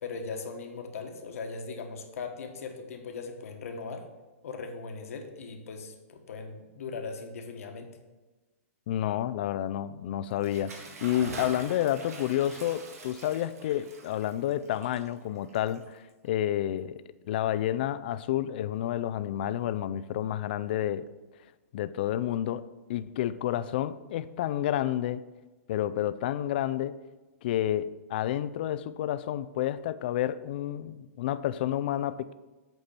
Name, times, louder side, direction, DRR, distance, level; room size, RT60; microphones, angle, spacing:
voice 1, 0.0-4.1 4.4-7.9, left 4 dB, 70° left, 1.3 m, -39 dB
voice 2, 8.9-21.1 21.7-22.6 22.9-25.2 25.7-27.0 27.4-32.3, left 12 dB, 40° left, 0.3 m, -30 dB
Bathtub (filling or washing) / Splash splatter, 10.3-16.3, right 3 dB, 90° right, 1.9 m, -45 dB
8.0 x 4.4 x 6.9 m
hypercardioid pair, 165°, 8 cm